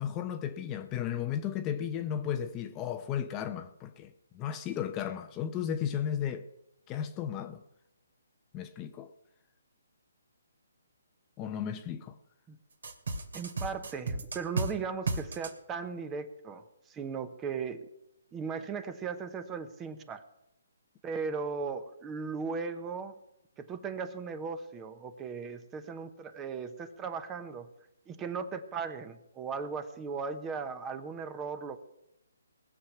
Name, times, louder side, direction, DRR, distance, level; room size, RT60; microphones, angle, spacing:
voice 1, 0.0-6.5 6.9-7.6 8.5-9.1 11.4-12.2, left 9 dB, 20° left, 0.7 m, -34 dB
sound 1, 12.8-14.7 15.1-15.5, right 3 dB, 75° right, 2.4 m, -32 dB
voice 2, 13.3-17.9 18.3-20.2 21.0-23.2 23.6-27.7 28.1-31.8, right 5 dB, 15° right, 0.9 m, -37 dB
20.0 x 7.2 x 5.9 m
hypercardioid pair, 155°, 0 cm